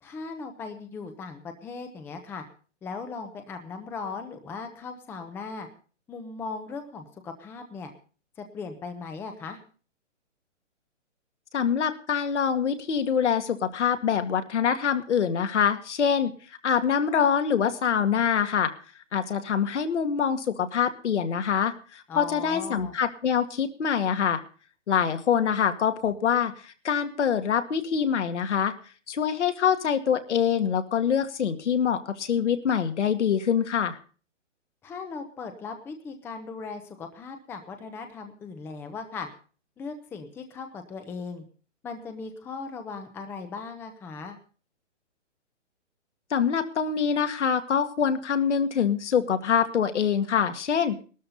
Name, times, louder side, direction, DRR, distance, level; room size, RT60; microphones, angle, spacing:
voice 1, 0.0-2.4 2.8-5.7 6.1-7.9 8.4-9.6 22.1-23.0 34.8-39.3 39.8-41.4 41.8-44.4, left 4 dB, 5° left, 6 dB, 0.8 m, -38 dB
voice 2, 11.5-16.3 16.6-18.7 19.1-24.4 24.9-28.7 29.1-34.0 46.3-51.0, left 7 dB, 70° left, 7 dB, 2.2 m, -25 dB
18.0 x 13.0 x 4.1 m, 0.39 s
hypercardioid pair, 155°, 37 cm